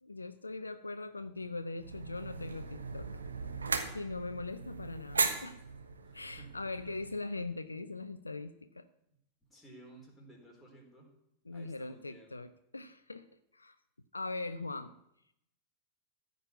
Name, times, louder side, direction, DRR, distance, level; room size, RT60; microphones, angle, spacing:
voice 1, 0.0-3.1 3.9-5.6 6.1-8.9 11.4-13.3 13.5-13.8 14.1-14.9, left 3 dB, 80° left, 12 dB, 0.5 m, -41 dB
sound 1, 1.8-7.2, right 4 dB, 75° right, 1.3 m, -37 dB
voice 2, 6.1-6.5 9.5-11.1 11.5-12.3, right 1 dB, 10° left, -1 dB, 4.1 m, -56 dB
14.0 x 5.4 x 8.2 m, 0.77 s
figure-of-eight pair, 90°, 0 cm